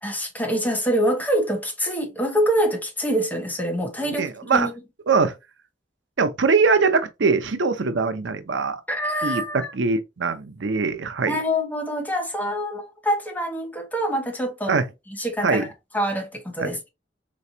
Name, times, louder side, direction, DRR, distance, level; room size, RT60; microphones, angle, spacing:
voice 1, 0.0-4.7 8.9-9.7 11.2-14.8 15.2-15.7 15.9-16.9, equal, 10° left, 1.1 m, -25 dB
voice 2, 4.0-4.7 5.1-5.3 6.2-8.8 9.2-11.4 14.7-14.9 15.4-15.7 16.6-16.7, right 4 dB, 90° right, 0.7 m, -22 dB
4.3 x 3.1 x 2.6 m
head